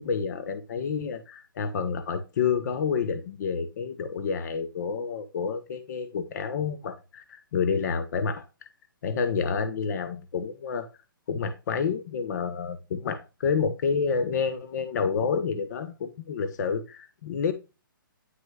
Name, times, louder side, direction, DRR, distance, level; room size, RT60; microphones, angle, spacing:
voice 1, 0.0-8.4 9.0-10.9 11.3-17.5, left 6 dB, 50° left, 0.9 m, -29 dB
9.6 x 6.1 x 2.3 m
hypercardioid pair, 145°, 12 cm